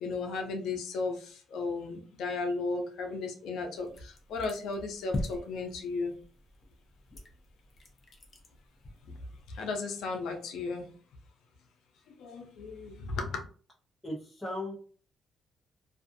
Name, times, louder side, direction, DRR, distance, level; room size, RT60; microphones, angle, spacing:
voice 1, 0.0-1.2 1.5-6.1 9.5-10.9 12.2-13.4, left 3 dB, 85° left, 3 dB, 0.6 m, -35 dB
sound 1, 3.7-9.6, left 2 dB, 40° left, 0.7 m, -43 dB
voice 2, 14.0-14.7, left 1 dB, 10° left, -6 dB, 0.9 m, -36 dB
2.4 x 2.4 x 2.6 m, 0.42 s
cardioid pair, 90°, 0 cm